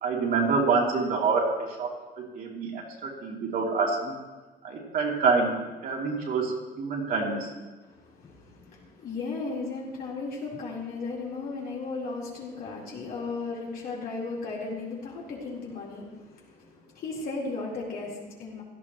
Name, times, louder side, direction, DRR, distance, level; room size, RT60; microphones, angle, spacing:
voice 1, 0.0-4.2 4.6-7.5, right 4 dB, 60° right, -2 dB, 3.1 m, -27 dB
voice 2, 7.8-18.6, left 3 dB, 60° left, -4 dB, 4.2 m, -36 dB
16.5 x 12.0 x 3.2 m, 1.2 s
cardioid pair, 110°, 17 cm